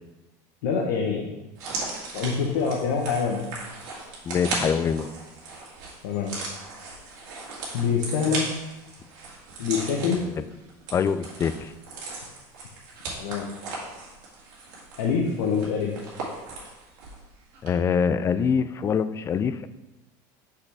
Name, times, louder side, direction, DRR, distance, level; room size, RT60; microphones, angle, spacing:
voice 1, 0.6-1.3 2.1-3.4 6.0-6.3 7.7-8.4 9.6-10.2 13.2-13.5 15.0-15.9, left 6 dB, 85° left, -1 dB, 1.0 m, -25 dB
sound 1, 1.5-17.2 17.5-17.7, right 3 dB, 80° right, 2.0 m, -37 dB
voice 2, 4.2-5.1 10.2-10.3 10.9-11.7 17.6-19.7, left 6 dB, 30° left, 13 dB, 0.3 m, -24 dB
5.8 x 5.7 x 3.4 m, 0.99 s
supercardioid pair, 115°, 10 cm